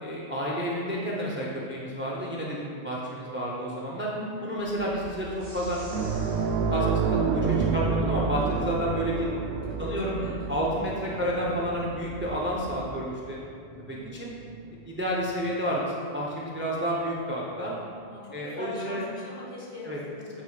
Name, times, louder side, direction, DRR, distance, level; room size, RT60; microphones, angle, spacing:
voice 1, 0.0-4.1 4.4-5.8 6.3-6.4 6.7-9.3 9.8-10.2 10.5-13.4 13.9-14.3 14.7-17.8 18.3-19.1 19.9-20.0, equal, 15° right, -4 dB, 0.5 m, -30 dB
voice 2, 4.1-4.5 9.7-10.6 13.9-14.2 18.1-20.3, left 2 dB, 45° left, -6 dB, 1.4 m, -41 dB
sound 1, 4.6-12.8, equal, 70° left, 1.5 m, -44 dB
sound 2, 5.4-8.0, right 1 dB, 55° right, 1.4 m, -50 dB
sound 3, 5.9-14.9 15.2-15.4 17.4-17.5, right 5 dB, 75° right, 0.8 m, -30 dB
8.3 x 4.9 x 2.3 m, 2.4 s
omnidirectional pair, 1.1 m